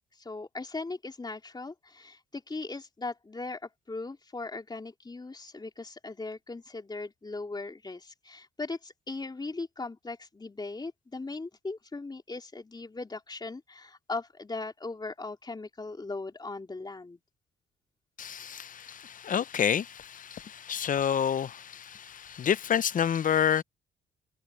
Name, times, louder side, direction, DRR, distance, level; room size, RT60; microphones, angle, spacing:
voice 1, 0.1-17.2, left 3 dB, 20° left, 3.6 m, -39 dB
voice 2, 18.2-23.6, left 8 dB, 40° left, 0.6 m, -29 dB
cardioid pair, 90°, 20 cm